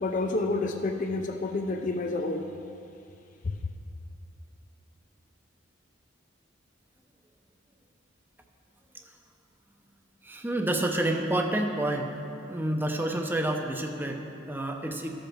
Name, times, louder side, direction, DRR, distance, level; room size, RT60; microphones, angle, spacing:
voice 1, 0.0-2.5 3.4-3.5, left 2 dB, 40° left, 4 dB, 0.5 m, -29 dB
voice 2, 10.2-12.1 12.5-15.1, right 1 dB, 10° right, 3 dB, 0.6 m, -29 dB
14.0 x 5.1 x 6.0 m, 2.6 s
head